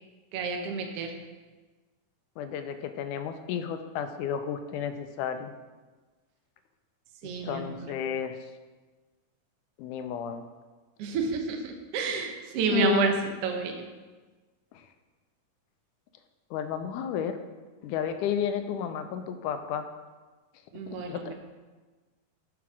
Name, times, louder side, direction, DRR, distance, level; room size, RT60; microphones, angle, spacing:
voice 1, 0.3-1.1 7.2-7.9 11.0-13.1 13.4-13.9 20.7-21.3, right 5 dB, 65° right, 4 dB, 1.6 m, -30 dB
voice 2, 2.4-5.5 7.4-8.4 9.8-10.4 12.7-13.1 14.7-14.9 16.5-17.4 17.8-19.8 21.1-21.3, left 8 dB, 80° left, 8 dB, 2.1 m, -31 dB
6.9 x 6.3 x 6.0 m, 1.3 s
omnidirectional pair, 3.6 m